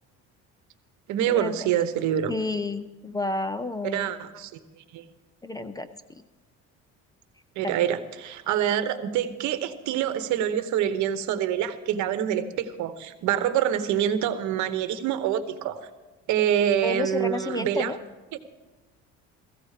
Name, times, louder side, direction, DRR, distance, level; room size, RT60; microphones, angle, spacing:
voice 1, 1.1-2.3 3.8-5.0 7.6-15.8 16.3-17.9, right 10 dB, 70° right, 11 dB, 1.1 m, -26 dB
voice 2, 2.3-4.1 5.4-6.2 7.6-7.8 16.8-18.0, left 2 dB, 10° left, 11 dB, 0.4 m, -31 dB
16.0 x 15.5 x 4.9 m, 1.2 s
cardioid pair, 135°, 30 cm